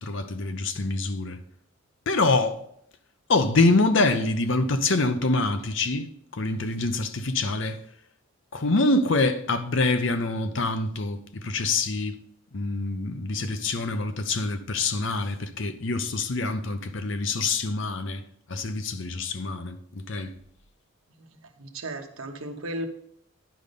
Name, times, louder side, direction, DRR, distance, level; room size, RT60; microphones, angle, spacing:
voice 1, 0.0-1.4 2.1-2.6 3.3-6.1 6.3-7.8 8.5-12.1 12.5-18.2 18.5-20.3, left 3 dB, 55° left, 0.7 m, -25 dB
voice 2, 21.6-22.9, right 1 dB, 70° right, 1.1 m, -35 dB
10.0 x 5.3 x 5.2 m
head